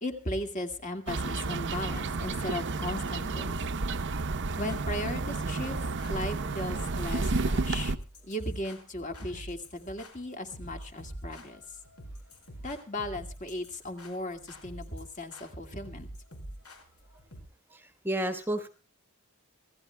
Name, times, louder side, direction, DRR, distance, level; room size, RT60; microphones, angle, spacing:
voice 1, 0.0-3.6 4.6-5.8 6.1-7.9 8.2-11.6 12.6-16.1, left 1 dB, 35° left, 5 dB, 2.0 m, -36 dB
sound 1, 1.1-8.0, right 3 dB, 55° right, 0.8 m, -31 dB
sound 2, 4.7-17.4, equal, 75° left, 5.1 m, -46 dB
voice 2, 17.7-18.7, right 1 dB, 10° right, 8 dB, 1.2 m, -31 dB
26.5 x 16.5 x 2.2 m, 0.34 s
head